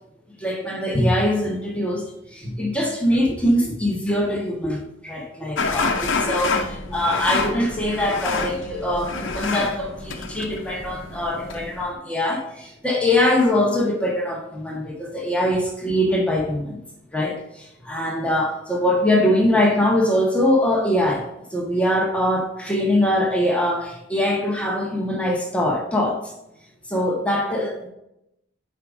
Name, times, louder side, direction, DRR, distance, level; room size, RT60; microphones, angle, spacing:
voice 1, 0.4-16.8 17.1-21.2 21.5-26.3 26.9-27.9, left 1 dB, 5° left, -2 dB, 1.4 m, -22 dB
sound 1, 5.6-11.9, left 4 dB, 85° left, 0.9 m, -28 dB
8.8 x 5.0 x 2.6 m, 0.83 s
head